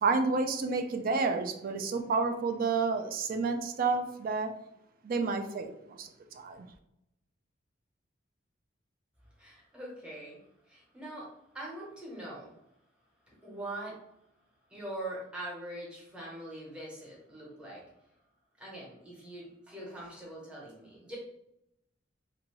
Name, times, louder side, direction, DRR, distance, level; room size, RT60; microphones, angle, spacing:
voice 1, 0.0-4.5 5.0-6.7, right 4 dB, 50° right, 6 dB, 0.4 m, -30 dB
voice 2, 9.4-10.4 10.7-11.3 11.5-12.5 13.4-14.0 14.7-17.8 18.6-21.2, right 1 dB, 5° right, -4 dB, 0.9 m, -42 dB
2.6 x 2.6 x 3.0 m, 0.82 s
head